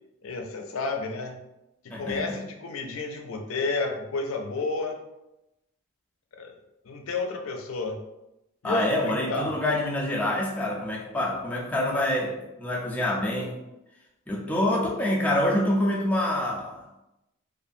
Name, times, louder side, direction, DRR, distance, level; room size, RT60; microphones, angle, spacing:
voice 1, 0.2-1.4 1.8-5.0 6.4-6.5 6.9-8.0 8.6-9.5 14.5-14.8, left 3 dB, 75° left, 4 dB, 0.4 m, -31 dB
voice 2, 1.9-2.4 8.6-13.6 14.3-16.8, left 1 dB, 5° left, -3 dB, 0.4 m, -26 dB
2.6 x 2.4 x 2.6 m, 0.92 s
head